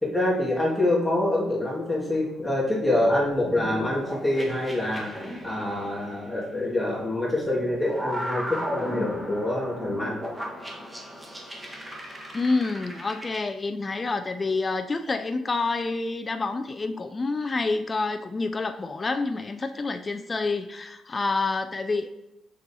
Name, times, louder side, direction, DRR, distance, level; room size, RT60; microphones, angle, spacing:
voice 1, 0.0-10.1, left 1 dB, 5° left, -5 dB, 2.0 m, -26 dB
sound 1, 0.7-1.9 2.5-6.8 7.4-13.4, equal, 15° right, 1.4 m, -36 dB
voice 2, 12.3-22.1, left 3 dB, 30° left, 8 dB, 0.3 m, -28 dB
6.6 x 6.1 x 2.8 m, 0.92 s
cardioid pair, 90°, 0 cm